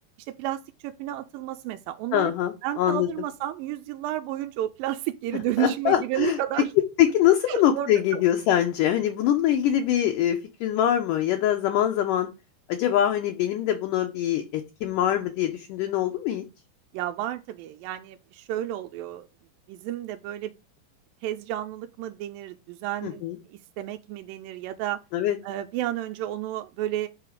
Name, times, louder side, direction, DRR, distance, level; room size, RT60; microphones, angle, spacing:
voice 1, 0.3-2.3 2.6-6.7 7.5-8.2 16.9-19.3 19.7-20.6 21.2-23.2 23.5-25.0 25.4-27.1, right 13 dB, 85° right, 2.0 m, -31 dB
voice 2, 2.1-3.1 5.6-6.4 6.8-12.3 12.7-16.4 23.0-23.4 25.1-25.4, left 11 dB, 75° left, 2.0 m, -23 dB
8.1 x 3.9 x 6.5 m
omnidirectional pair, 4.7 m